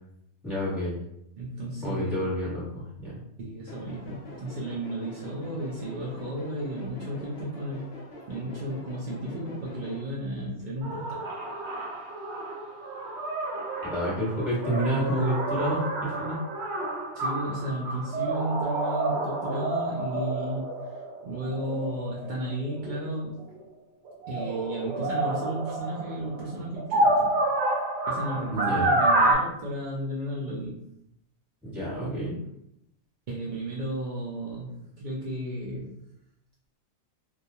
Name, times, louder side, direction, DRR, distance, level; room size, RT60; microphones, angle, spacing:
voice 1, 0.4-1.0 1.8-3.1 13.8-16.4 28.5-28.9 31.6-32.4, equal, ahead, -9 dB, 1.1 m, -29 dB
voice 2, 1.4-2.2 3.4-7.9 8.3-11.2 17.1-23.4 24.3-27.4 28.1-30.8 33.3-35.9, right 1 dB, 75° right, -5 dB, 0.4 m, -33 dB
sound 1, 3.7-10.0, left 1 dB, 60° left, 0.7 m, -45 dB
sound 2, 10.8-23.6 24.1-29.3, right 2 dB, 60° right, 0.9 m, -29 dB
2.3 x 2.2 x 2.7 m, 0.79 s
omnidirectional pair, 1.4 m